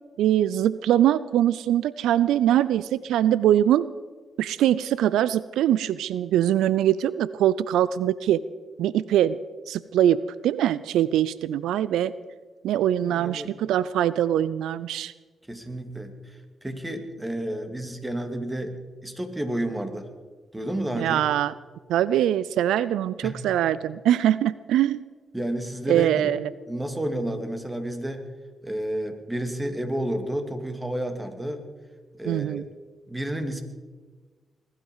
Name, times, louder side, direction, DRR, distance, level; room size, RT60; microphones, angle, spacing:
voice 1, 0.2-3.9 4.4-8.4 8.8-9.4 9.7-12.1 12.6-15.1 21.0-21.5 21.9-25.0 25.9-26.5 32.3-32.7, right 11 dB, 85° right, 17 dB, 0.4 m, -22 dB
voice 2, 13.0-13.6 15.5-20.1 20.5-21.2 23.2-23.4 25.3-26.3 26.7-28.3 28.6-31.6 32.2-32.6 33.1-33.6, right 1 dB, 15° right, 6 dB, 2.7 m, -31 dB
20.5 x 12.0 x 5.5 m, 1.4 s
supercardioid pair, 50°, 0 cm